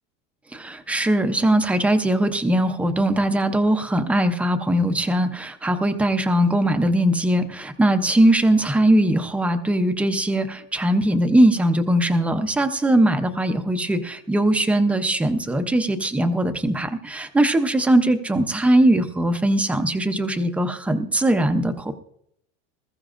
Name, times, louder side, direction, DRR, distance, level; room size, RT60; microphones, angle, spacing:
voice 1, 0.5-21.9, right 1 dB, 5° right, 7 dB, 0.5 m, -20 dB
20.5 x 14.0 x 2.5 m, 0.74 s
cardioid pair, 165°, 33 cm